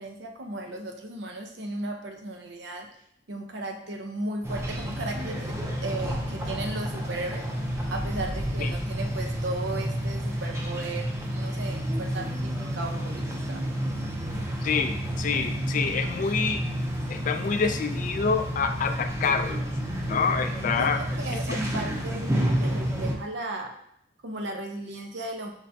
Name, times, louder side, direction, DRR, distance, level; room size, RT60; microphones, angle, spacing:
voice 1, 0.0-2.9 3.3-7.5 7.9-13.7 20.6-23.7 24.2-25.5, right 2 dB, 70° right, 3 dB, 0.6 m, -36 dB
sound 1, 4.4-23.1, equal, 15° right, 0.5 m, -30 dB
voice 2, 14.6-16.6 17.1-19.6 20.0-21.0 21.5-21.6, left 5 dB, 45° left, 8 dB, 0.3 m, -27 dB
5.2 x 3.3 x 2.7 m, 0.73 s
head